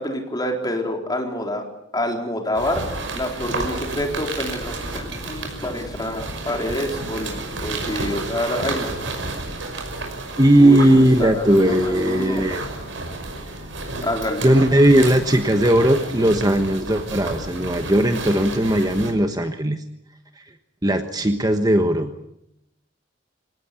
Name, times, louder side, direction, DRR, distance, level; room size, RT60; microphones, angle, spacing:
voice 1, 0.0-1.6 1.9-2.8 3.1-9.1 10.6-12.5 14.0-14.5, left 1 dB, 20° left, 2 dB, 4.0 m, -27 dB
sound 1, 2.5-19.1, right 2 dB, 80° right, 5.7 m, -31 dB
voice 2, 10.4-12.7 14.4-19.8 20.8-22.1, right 1 dB, 20° right, 7 dB, 1.3 m, -17 dB
25.0 x 18.5 x 8.5 m, 0.82 s
head